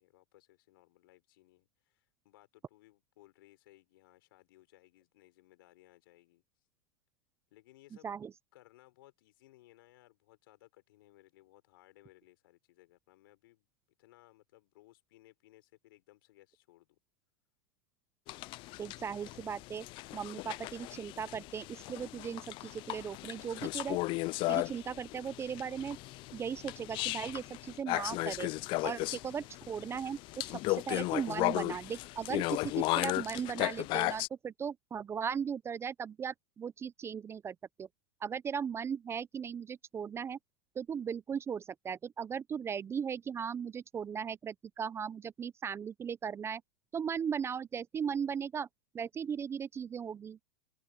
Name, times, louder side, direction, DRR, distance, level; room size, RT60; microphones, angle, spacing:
voice 1, 0.0-6.4 7.5-8.2 8.5-13.7 14.0-17.0, left 17 dB, 65° left, 4.7 m, -62 dB
sound 1, 18.3-34.3, left 21 dB, 40° left, 0.5 m, -36 dB
voice 2, 18.8-19.9 20.1-24.0 24.5-26.0 26.3-28.5 28.8-37.9 38.2-40.4 40.8-46.6 46.9-48.7 48.9-50.4, right 7 dB, 20° right, 0.6 m, -37 dB
hypercardioid pair, 105°, 13 cm